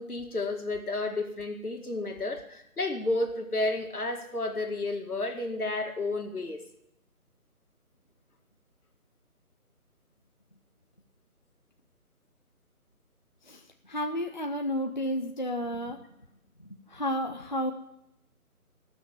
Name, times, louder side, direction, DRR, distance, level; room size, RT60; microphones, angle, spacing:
voice 1, 0.0-6.6, left 2 dB, 80° left, 4 dB, 2.2 m, -31 dB
voice 2, 13.9-16.0 16.9-17.7, equal, 30° left, 4 dB, 0.6 m, -31 dB
18.5 x 6.4 x 8.2 m, 0.80 s
figure-of-eight pair, 160°, 44 cm